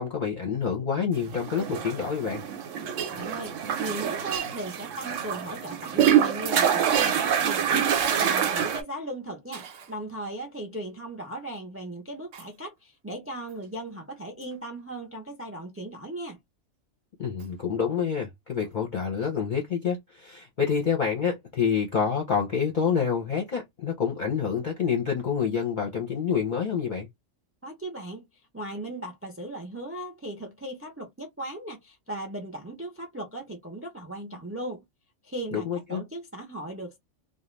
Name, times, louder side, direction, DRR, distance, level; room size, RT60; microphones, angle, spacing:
voice 1, 0.0-2.4 17.2-27.1 35.5-36.0, left 6 dB, 45° left, 0.7 m, -27 dB
sound 1, 1.3-8.8, right 8 dB, 90° right, 1.0 m, -26 dB
voice 2, 3.0-16.4 27.6-28.3 28.5-34.8 35.2-37.0, right 1 dB, 15° right, 0.5 m, -37 dB
Shatter, 3.0-3.2 4.3-4.5 6.0-6.4 6.9-7.2 7.9-8.8 9.5-10.0 12.3-12.5 13.5-13.7 14.4-14.6 17.4-17.5 18.6-18.7, right 9 dB, 65° right, 0.9 m, -36 dB
2.4 x 2.2 x 3.1 m
omnidirectional pair, 1.3 m